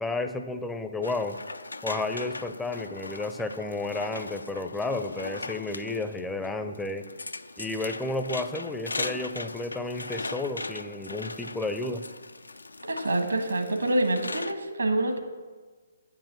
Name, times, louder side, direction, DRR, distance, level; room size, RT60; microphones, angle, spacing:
voice 1, 0.0-1.4 1.8-7.1 7.6-12.0, left 2 dB, 5° left, 7 dB, 0.5 m, -32 dB
sound 1, 1.0-14.5, left 3 dB, 75° left, 0.4 m, -39 dB
voice 2, 12.8-15.2, right 1 dB, 75° right, 5 dB, 1.4 m, -26 dB
8.8 x 7.4 x 6.0 m, 1.4 s
figure-of-eight pair, 135°, 0 cm